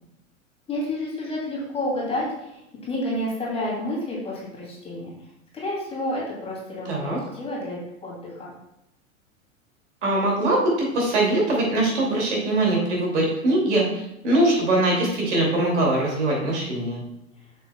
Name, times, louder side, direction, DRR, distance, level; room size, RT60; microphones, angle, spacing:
voice 1, 0.7-2.6 2.9-5.1 5.5-8.5, left 1 dB, 15° left, -5 dB, 2.7 m, -30 dB
voice 2, 6.8-7.2 10.0-17.0, right 2 dB, 55° right, -2 dB, 2.6 m, -22 dB
8.3 x 6.8 x 2.3 m, 0.84 s
figure-of-eight pair, 95°, 42 cm